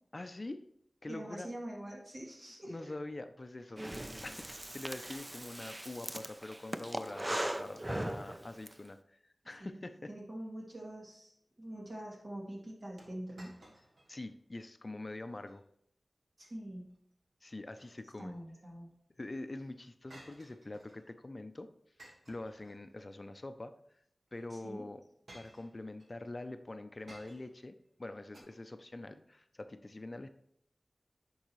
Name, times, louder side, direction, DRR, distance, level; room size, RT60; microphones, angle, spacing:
voice 1, 0.1-0.6 1.0-1.5 2.6-3.8 4.2-10.1 14.1-15.6 17.4-18.3 19.2-21.7 22.3-23.7 24.3-25.0 25.3-30.3, left 2 dB, 40° left, 10 dB, 0.5 m, -44 dB
voice 2, 1.1-2.9 9.6-9.8 10.1-13.6 16.4-16.9 18.2-18.9 24.5-24.9, right 1 dB, 55° right, -3 dB, 2.7 m, -45 dB
Breathing, 3.8-8.7, right 1 dB, 20° right, 0.5 m, -39 dB
sound 1, 13.0-14.2 14.5-14.6 15.2-15.6 17.5-18.4 20.1-21.1 22.0-23.2 24.3-24.4 25.3-26.1 27.1-27.7 28.3-28.4, right 1 dB, 85° right, 1.6 m, -57 dB
10.5 x 5.4 x 3.1 m, 0.74 s
wide cardioid pair, 75°, 0 cm